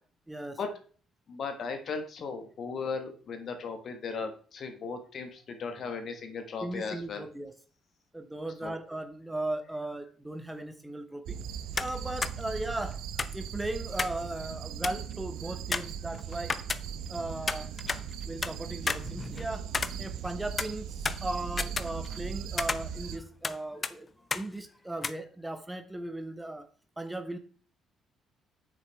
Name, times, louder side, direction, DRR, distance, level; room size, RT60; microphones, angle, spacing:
voice 1, 0.3-0.6 6.6-7.6 8.1-11.4 11.8-13.0 13.3-16.6 17.1-17.7 18.3-19.7 20.0-24.1 24.3-26.7 27.0-27.4, right 1 dB, 10° right, 8 dB, 1.0 m, -37 dB
voice 2, 1.3-7.3 8.6-8.7, left 5 dB, 45° left, 7 dB, 1.5 m, -37 dB
sound 1, 11.3-23.2, right 8 dB, 60° right, 0.6 m, -39 dB
sound 2, 11.8-12.0 12.2-12.3 13.2-14.2 14.5-14.6 14.8-15.1 15.7-17.1 17.5-18.5 18.9-20.3 20.6-22.3 22.6-23.6 23.8-23.9 24.3-24.5 25.0-25.1, left 4 dB, 30° left, 0.5 m, -33 dB
8.9 x 6.4 x 3.4 m, 0.42 s
figure-of-eight pair, 45°, 0 cm